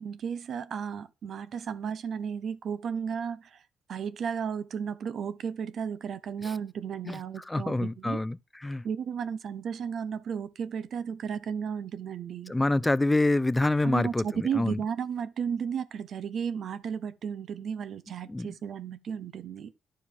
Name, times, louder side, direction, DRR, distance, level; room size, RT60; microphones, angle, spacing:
voice 1, 0.0-3.6 3.9-8.2 8.8-12.5 13.8-19.7, right 7 dB, 60° right, 1.0 m, -34 dB
voice 2, 7.5-8.4 8.6-8.8 12.5-14.8 18.3-18.5, left 2 dB, 15° left, 0.5 m, -26 dB
11.5 x 4.7 x 6.8 m
cardioid pair, 90°, 0 cm